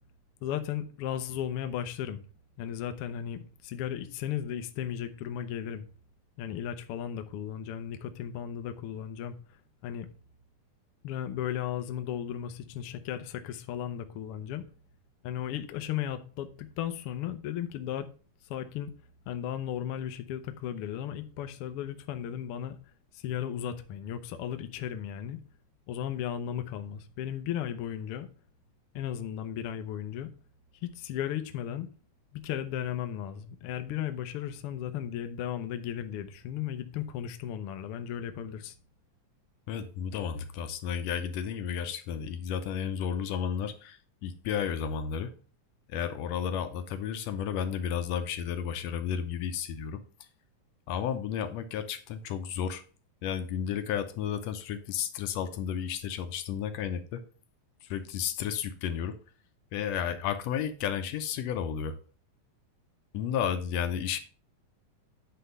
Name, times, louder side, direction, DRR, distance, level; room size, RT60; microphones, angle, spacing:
voice 1, 0.4-2.2 2.6-5.8 6.4-9.3 9.8-10.1 11.0-14.6 15.2-18.1 18.5-18.9 19.3-22.8 23.1-25.4 25.9-28.3 28.9-30.3 30.8-31.9 32.3-38.7, left 10 dB, 90° left, 1.2 m, -35 dB
voice 2, 39.7-45.3 45.9-50.0 50.9-52.8 53.2-57.2 57.9-59.1 59.7-61.9 63.1-64.2, left 8 dB, 75° left, 1.7 m, -32 dB
9.7 x 3.4 x 5.4 m
omnidirectional pair, 3.5 m